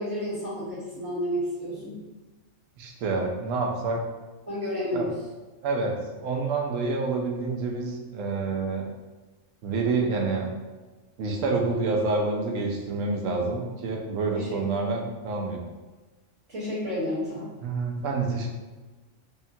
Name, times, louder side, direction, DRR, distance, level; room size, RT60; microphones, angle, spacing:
voice 1, 0.0-2.0 4.5-5.1 14.3-14.6 16.5-17.5, equal, 60° right, -10 dB, 1.8 m, -31 dB
voice 2, 2.8-4.0 4.9-5.1 5.6-8.8 9.6-10.5 11.2-15.6 17.6-18.5, right 3 dB, 80° right, 1 dB, 0.9 m, -28 dB
3.5 x 2.2 x 2.6 m, 1.2 s
omnidirectional pair, 1.3 m